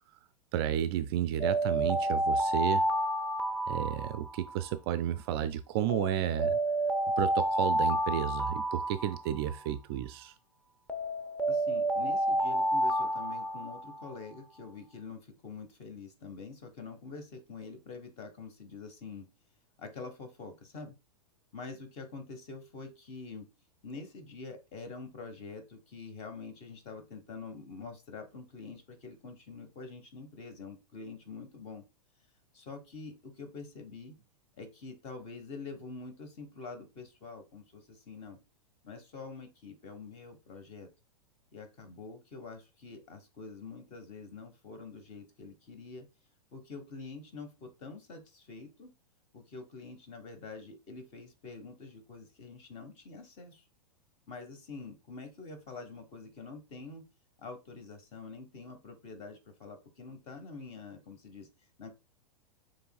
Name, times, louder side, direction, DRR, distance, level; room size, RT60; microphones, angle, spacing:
voice 1, 0.5-2.9 3.7-6.6 7.2-10.3, right 11 dB, 40° right, 0.4 m, -32 dB
Alarm, 1.4-4.7 5.9-9.7 10.9-14.2, right 1 dB, 5° left, 0.6 m, -30 dB
voice 2, 11.5-19.3 19.8-20.9 21.5-23.4 23.8-31.8 32.5-34.2 34.6-38.4 38.8-40.9 41.5-46.1 46.5-48.9 49.3-53.6 54.3-57.0 57.4-61.5 61.8-61.9, left 4 dB, 35° left, 1.2 m, -46 dB
6.7 x 3.2 x 2.3 m
figure-of-eight pair, 105°, 20 cm